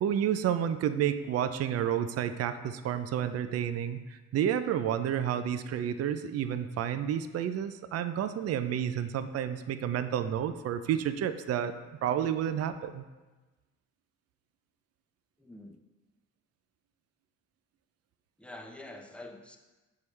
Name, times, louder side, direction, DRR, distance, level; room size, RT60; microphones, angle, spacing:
voice 1, 0.0-13.0, right 9 dB, 55° right, 11 dB, 0.4 m, -30 dB
voice 2, 15.4-15.8 18.4-19.6, left 1 dB, 5° left, 3 dB, 0.7 m, -46 dB
7.0 x 4.7 x 3.2 m, 1.2 s
cardioid pair, 90°, 30 cm